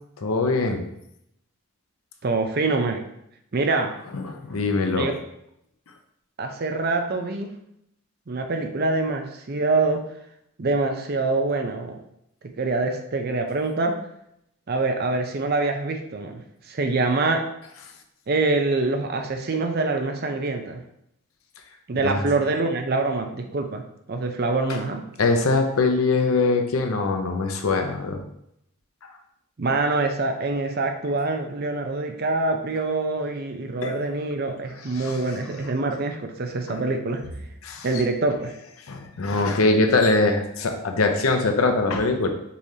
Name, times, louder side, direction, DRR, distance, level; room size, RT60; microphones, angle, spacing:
voice 1, 0.2-0.8 4.1-5.1 22.0-22.2 24.7-24.8 25.2-28.2 33.8-33.9 35.0-35.2 36.7-36.8 37.6-37.9 38.9-42.3, left 3 dB, 90° left, 5 dB, 0.7 m, -22 dB
voice 2, 2.2-3.0 3.5-3.9 4.9-5.1 6.4-7.5 8.3-10.0 10.6-12.0 12.6-14.0 14.7-16.4 16.7-17.4 18.3-20.8 21.9-23.8 24.1-25.0 29.6-37.2 37.8-38.5, right 3 dB, 45° right, 5 dB, 0.5 m, -25 dB
5.4 x 3.2 x 2.7 m, 0.77 s
head